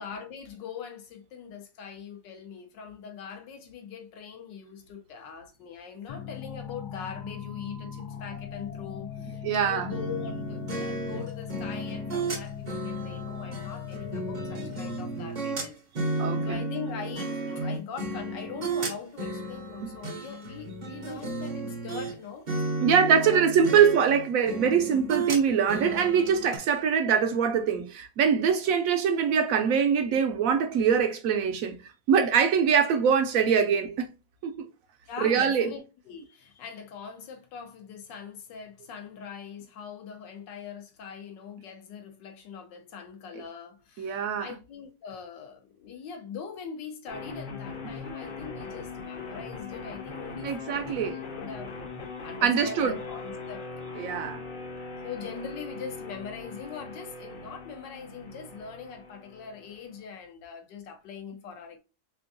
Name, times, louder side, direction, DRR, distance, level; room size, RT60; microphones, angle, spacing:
voice 1, 0.0-22.5 22.9-23.4 23.7-24.1 35.1-51.7 52.2-53.7 54.0-54.4 55.0-61.8, left 7 dB, 90° left, 1.5 m, -42 dB
sound 1, 6.1-15.3, left 8 dB, 75° left, 1.1 m, -39 dB
voice 2, 9.4-9.9 16.2-16.6 19.8-19.9 22.8-34.1 34.4-34.7 35.2-35.7 44.0-44.5 50.4-51.2 52.4-53.0 54.0-54.4, right 7 dB, 70° right, 0.8 m, -23 dB
sound 2, 9.9-22.1 22.5-26.6, right 2 dB, 45° right, 0.6 m, -33 dB
sound 3, 47.1-60.1, left 4 dB, 50° left, 0.6 m, -40 dB
3.7 x 3.4 x 2.5 m
omnidirectional pair, 1.9 m